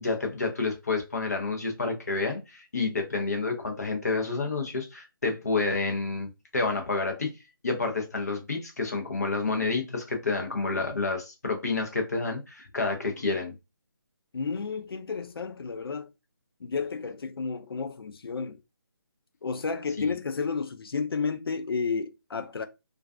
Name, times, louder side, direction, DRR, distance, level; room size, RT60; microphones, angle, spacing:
voice 1, 0.0-7.3 7.6-13.5 20.0-20.1, left 3 dB, 45° left, 0.7 m, -29 dB
voice 2, 14.3-16.1 16.6-18.6 19.4-22.7, left 5 dB, 80° left, 0.4 m, -32 dB
2.3 x 2.3 x 2.3 m
hypercardioid pair, 180°, 12 cm